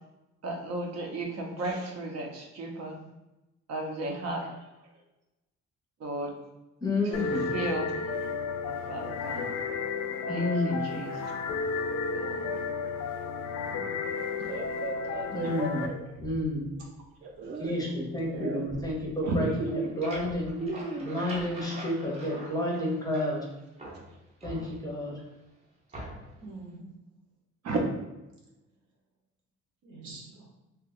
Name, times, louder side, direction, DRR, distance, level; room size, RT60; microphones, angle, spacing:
voice 1, 0.4-3.0 3.7-4.5 6.0-6.3 7.1-7.9 8.7-9.6 10.3-11.3 12.1-12.5 15.4-15.5 19.3-19.4 27.6-27.8, right 2 dB, 60° right, 1 dB, 0.7 m, -34 dB
voice 2, 6.8-7.5 10.3-10.9 15.3-16.7 17.6-20.7 21.0-23.5 24.4-25.2, left 1 dB, 15° left, -2 dB, 0.6 m, -30 dB
sound 1, 7.1-15.9, left 4 dB, 85° left, 0.4 m, -33 dB
voice 3, 13.7-14.1 17.4-18.1 26.4-26.9 29.8-30.5, right 3 dB, 80° right, -2 dB, 1.0 m, -46 dB
sound 2, 14.4-16.7 17.2-17.8 18.3-21.4, right 3 dB, 40° right, 0.4 m, -36 dB
sound 3, 19.7-23.5 23.8-25.1 25.9-26.4, right 1 dB, 20° right, 0.8 m, -44 dB
2.8 x 2.3 x 3.6 m, 0.98 s
cardioid pair, 125°, 29 cm